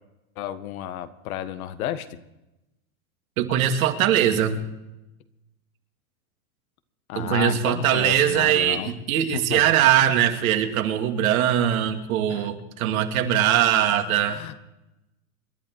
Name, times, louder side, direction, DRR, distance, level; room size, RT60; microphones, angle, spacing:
voice 1, 0.3-2.1 7.1-8.9 9.3-9.6 12.3-12.5 14.3-14.5, left 11 dB, 80° left, 10 dB, 1.6 m, -32 dB
voice 2, 3.4-4.6 7.2-14.4, right 10 dB, 75° right, 4 dB, 2.5 m, -21 dB
27.5 x 11.0 x 4.7 m, 0.95 s
supercardioid pair, 130°, 42 cm